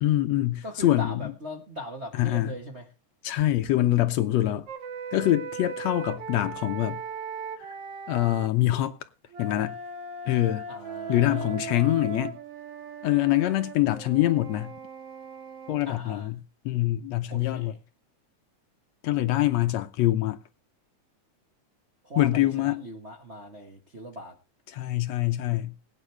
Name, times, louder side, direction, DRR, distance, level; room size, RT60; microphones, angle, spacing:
voice 1, 0.0-1.3 2.1-2.5 3.2-4.7 5.1-7.0 8.1-9.0 9.4-9.8 10.3-10.7 11.1-12.4 13.0-14.7 15.7-16.4 16.7-17.7 19.0-20.4 22.2-22.8 24.7-25.7, left 15 dB, 70° left, 1.8 m, -24 dB
voice 2, 0.6-2.9 10.7-11.6 15.8-16.3 17.3-17.8 22.0-24.4, equal, 35° right, 1.0 m, -39 dB
sound 1, 4.7-8.5 9.3-15.8, right 5 dB, 55° right, 2.5 m, -38 dB
22.0 x 9.1 x 3.3 m
omnidirectional pair, 3.4 m